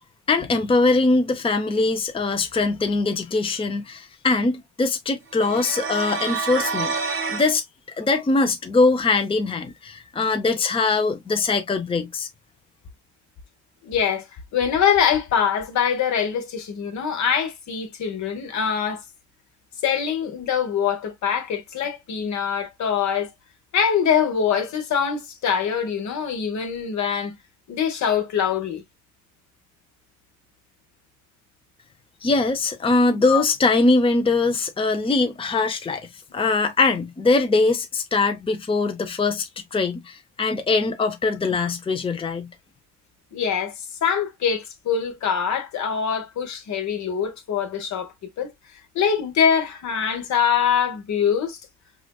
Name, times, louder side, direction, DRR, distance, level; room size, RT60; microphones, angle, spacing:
voice 1, 0.3-6.9 7.2-7.6 8.0-12.3 32.2-42.5, left 3 dB, 20° left, 0.6 m, -22 dB
sound 1, 5.4-7.5, right 5 dB, 45° right, 0.9 m, -28 dB
voice 2, 13.8-14.3 14.5-19.0 19.8-23.3 23.7-27.3 27.7-28.8 33.3-33.4 36.3-36.4 43.3-48.5 48.9-51.6, left 7 dB, 70° left, 1.2 m, -23 dB
4.9 x 2.5 x 2.3 m
cardioid pair, 90°, 30 cm